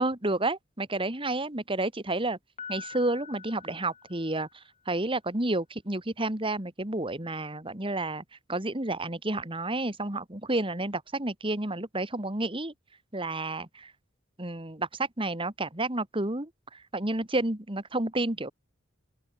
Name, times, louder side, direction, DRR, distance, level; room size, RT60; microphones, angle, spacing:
voice 1, 0.0-2.4 2.7-4.5 4.9-8.2 8.5-12.7 13.1-13.9 14.4-16.5 16.9-18.5, right 2 dB, 25° right, 2.6 m, -30 dB
Piano, 2.6-4.7, left 6 dB, 35° left, 3.8 m, -45 dB
open air
head